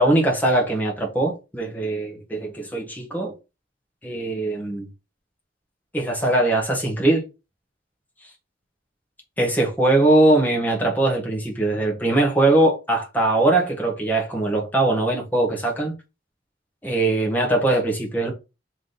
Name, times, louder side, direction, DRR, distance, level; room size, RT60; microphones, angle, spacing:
voice 1, 0.0-3.3 4.0-4.9 5.9-7.2 9.4-15.9 16.8-18.3, right 2 dB, 10° left, 1.2 m, -21 dB
3.5 x 3.1 x 4.0 m
head